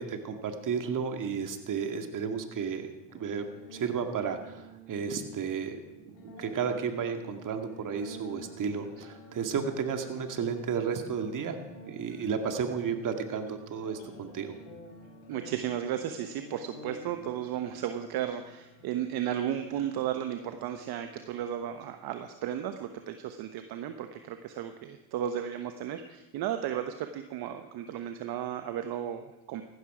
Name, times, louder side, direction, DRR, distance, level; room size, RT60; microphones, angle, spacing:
voice 1, 0.0-2.9 3.1-11.6 11.9-14.6, right 6 dB, 50° right, 6 dB, 2.0 m, -33 dB
sound 1, 3.1-22.1, right 1 dB, 75° left, 3.6 m, -51 dB
voice 2, 15.3-29.6, right 10 dB, 65° right, 8 dB, 1.0 m, -34 dB
15.5 x 12.5 x 4.9 m, 0.98 s
supercardioid pair, 80°, 40 cm